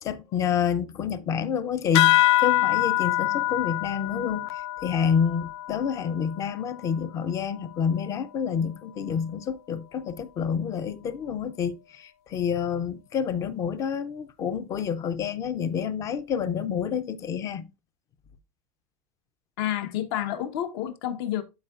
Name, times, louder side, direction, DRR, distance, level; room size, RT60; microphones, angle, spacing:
voice 1, 0.0-17.7, left 7 dB, 25° left, 0.5 m, -28 dB
sound 1, 1.9-6.9, left 16 dB, 80° left, 0.5 m, -25 dB
voice 2, 19.6-21.4, left 11 dB, 60° left, 1.1 m, -29 dB
12.0 x 4.6 x 2.4 m
supercardioid pair, 175°, 14 cm